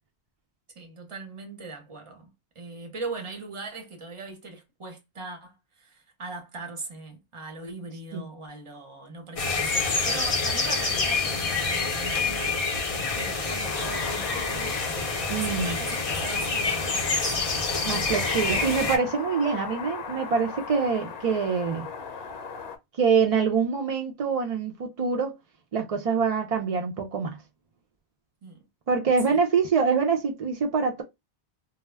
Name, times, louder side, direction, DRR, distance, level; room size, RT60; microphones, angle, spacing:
voice 1, 0.8-12.7 13.0-14.8 15.0-17.8 28.4-28.6 29.3-29.4, right 3 dB, 35° right, 0.6 m, -40 dB
sound 1, 9.4-19.0, left 4 dB, 45° left, 0.5 m, -27 dB
sound 2, 13.6-22.8, left 5 dB, 65° left, 0.8 m, -39 dB
voice 2, 15.3-15.8 17.8-21.9 23.0-25.4 25.7-27.4 28.9-31.0, right 5 dB, 65° right, 0.3 m, -25 dB
2.2 x 2.0 x 3.2 m
omnidirectional pair, 1.1 m